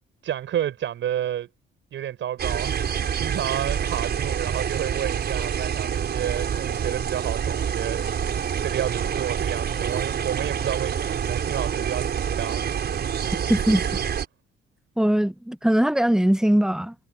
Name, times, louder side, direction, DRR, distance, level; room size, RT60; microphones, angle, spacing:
voice 1, 0.2-1.5 1.9-8.0 8.3-12.6, right 11 dB, 70° right, 6.5 m, -30 dB
sound 1, 2.4-14.2, right 8 dB, 55° right, 5.6 m, -27 dB
voice 2, 13.5-13.9 15.0-16.9, equal, 5° right, 0.7 m, -20 dB
cardioid pair, 90°, 20 cm